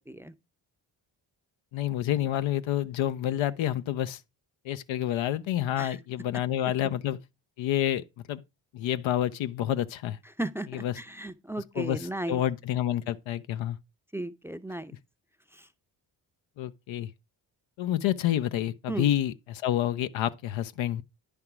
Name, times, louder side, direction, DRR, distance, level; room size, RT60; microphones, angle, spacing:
voice 1, 1.7-4.2 4.6-7.2 7.6-8.4 8.7-10.2 10.7-10.9 11.7-13.8 16.6-17.1 17.8-21.0, left 12 dB, 85° left, 0.7 m, -28 dB
voice 2, 10.4-12.4 14.1-14.9 15.5-15.7 18.9-19.0, right 1 dB, 5° right, 0.5 m, -35 dB
9.9 x 3.6 x 5.9 m
cardioid pair, 65°, 45 cm